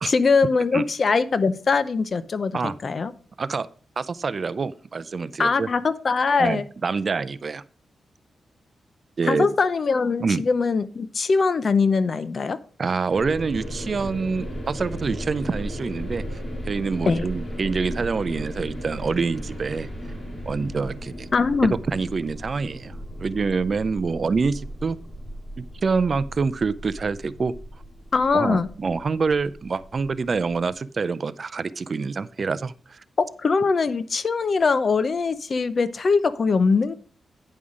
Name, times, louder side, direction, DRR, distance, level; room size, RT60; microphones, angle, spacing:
voice 1, 0.1-3.1 5.4-6.7 9.2-12.6 17.1-17.3 21.3-21.7 28.1-28.7 33.4-36.9, left 4 dB, 50° left, 14 dB, 0.7 m, -22 dB
voice 2, 4.0-5.7 6.4-7.6 9.2-9.5 10.2-10.4 12.8-16.2 16.7-19.9 20.5-21.3 21.6-22.9 23.2-25.0 25.6-27.5 28.3-33.0, right 4 dB, 45° right, 16 dB, 0.4 m, -26 dB
sound 1, 13.1-30.7, equal, 25° left, 4.0 m, -36 dB
9.9 x 5.5 x 4.9 m, 0.43 s
cardioid pair, 85°, 0 cm